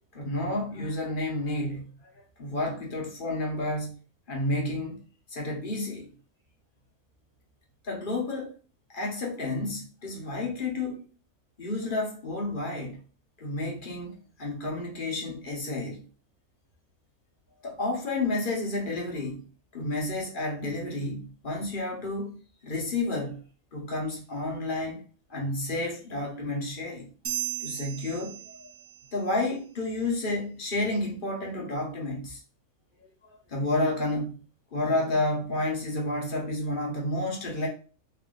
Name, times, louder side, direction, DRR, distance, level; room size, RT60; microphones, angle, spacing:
voice 1, 0.1-1.9 2.4-3.9 4.3-5.0 5.3-6.1 7.8-8.5 8.9-11.0 11.6-13.0 13.4-16.0 17.6-19.4 19.7-22.4 22.6-23.4 23.7-27.1 27.6-28.7 29.1-32.4 33.0-34.3 34.7-37.7, left 2 dB, 40° left, 1.0 m, -31 dB
sound 1, 27.3-29.1, right 12 dB, 85° right, 1.2 m, -35 dB
3.4 x 2.7 x 3.7 m
omnidirectional pair, 1.5 m